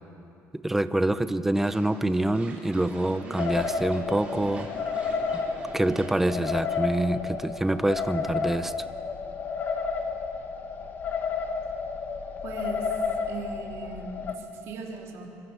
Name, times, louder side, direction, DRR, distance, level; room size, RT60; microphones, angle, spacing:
voice 1, 0.5-4.7 5.3-5.4 5.7-8.7, right 1 dB, 5° right, 12 dB, 0.6 m, -26 dB
sound 1, 1.5-6.8, right 2 dB, 25° right, 4.5 m, -43 dB
sound 2, 3.4-14.4, left 5 dB, 35° left, 1.4 m, -31 dB
voice 2, 12.4-13.0 13.3-15.3, right 3 dB, 60° right, 0 dB, 3.6 m, -38 dB
25.0 x 24.5 x 6.9 m, 2.8 s
cardioid pair, 170°, 5 cm